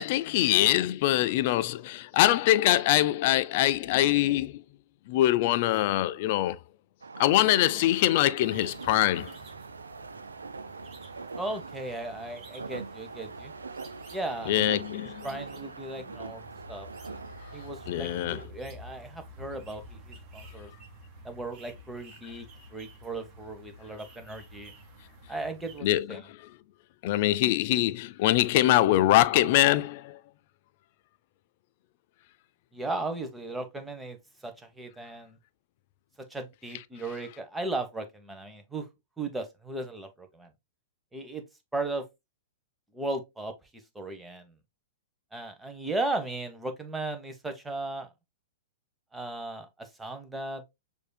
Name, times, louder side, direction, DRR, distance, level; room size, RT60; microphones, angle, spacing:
voice 1, 0.0-4.6 5.1-6.6 7.2-9.3 14.5-15.3 17.9-18.4 25.8-26.4 27.0-30.2, left 15 dB, 50° left, 0.3 m, -23 dB
sound 1, 7.0-18.5, right 4 dB, 80° right, 0.4 m, -42 dB
sound 2, 8.4-25.8, equal, 35° right, 1.4 m, -50 dB
voice 2, 11.3-13.5 14.1-14.8 15.2-16.4 16.7-16.9 17.5-20.7 21.2-24.7 25.3-26.3 32.7-34.2 34.4-35.4 36.3-38.9 39.2-40.5 41.1-41.4 41.7-42.1 42.9-43.5 43.9-44.5 45.3-48.1 49.1-50.6, right 2 dB, 5° right, 0.9 m, -36 dB
6.5 x 2.6 x 2.2 m
figure-of-eight pair, 110°, 0 cm